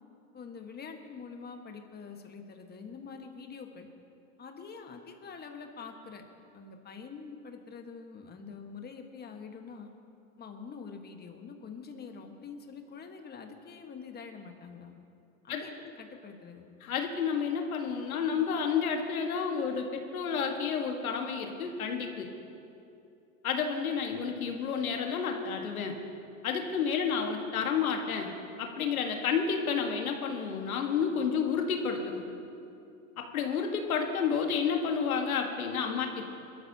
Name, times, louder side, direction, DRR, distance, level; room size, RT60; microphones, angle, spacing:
voice 1, 0.3-3.9 4.4-6.2 6.5-9.9 10.4-14.9 15.4-16.7, left 5 dB, 25° left, 4 dB, 1.5 m, -45 dB
voice 2, 16.8-22.3 23.4-26.0 26.4-28.3 28.6-32.2 33.2-36.3, left 6 dB, 85° left, 3 dB, 1.7 m, -30 dB
22.0 x 13.0 x 2.9 m, 2.7 s
hypercardioid pair, 105°, 41 cm